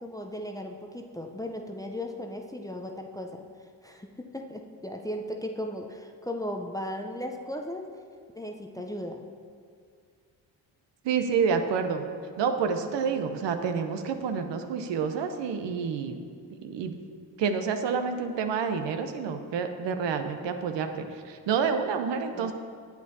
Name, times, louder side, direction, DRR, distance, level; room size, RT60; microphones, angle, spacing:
voice 1, 0.0-3.5 3.8-8.0 8.3-9.3 22.3-22.5, left 1 dB, 10° left, 2 dB, 0.6 m, -36 dB
voice 2, 11.0-12.1 12.4-16.2 16.6-17.0 17.4-20.9 21.3-22.5, right 6 dB, 65° right, 7 dB, 0.7 m, -28 dB
8.2 x 8.1 x 2.7 m, 2.2 s
hypercardioid pair, 50°, 47 cm